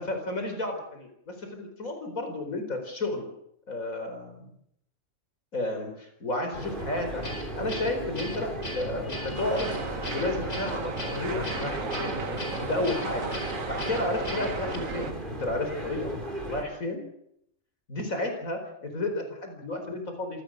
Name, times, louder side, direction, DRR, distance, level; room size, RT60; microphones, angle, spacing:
voice 1, 0.0-3.3 3.7-4.5 5.5-7.2 7.6-9.7 10.1-12.2 12.6-13.3 13.7-16.1 16.5-17.0 17.9-20.4, left 2 dB, 90° left, 5 dB, 4.8 m, -32 dB
sound 1, 6.5-16.6, right 1 dB, 35° right, 4.1 m, -36 dB
Guitar, 7.2-14.8, left 1 dB, 60° left, 5.0 m, -38 dB
sound 2, 9.4-15.1, right 5 dB, 75° right, 2.1 m, -36 dB
27.0 x 18.5 x 6.4 m, 0.75 s
omnidirectional pair, 1.4 m